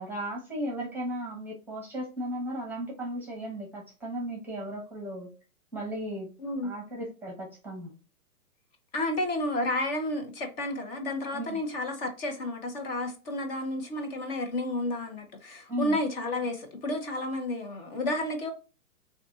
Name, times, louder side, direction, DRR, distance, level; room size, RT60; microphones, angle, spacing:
voice 1, 0.0-5.3 5.7-6.3 6.6-7.9 11.3-11.6 15.7-16.0, right 1 dB, 5° right, 1.1 m, -35 dB
voice 2, 6.4-6.7 8.9-18.5, left 1 dB, 40° left, 1.4 m, -31 dB
6.6 x 2.7 x 2.5 m
hypercardioid pair, 135°, 45 cm